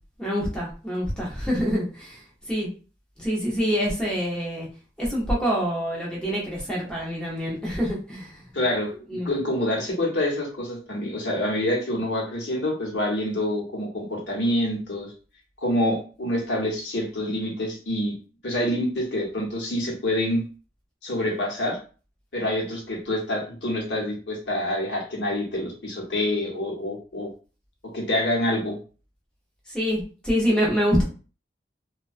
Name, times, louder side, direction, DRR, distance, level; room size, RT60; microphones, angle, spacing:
voice 1, 0.2-2.2 2.5-2.7 3.2-4.7 5.0-8.4 9.1-9.3 29.7-31.0, equal, 5° left, -5 dB, 0.8 m, -26 dB
voice 2, 8.5-15.1 15.6-18.2 18.4-20.4 21.0-21.8 22.3-27.3 27.9-28.8, left 1 dB, 80° left, -1 dB, 0.9 m, -26 dB
2.2 x 2.2 x 2.5 m, 0.36 s
head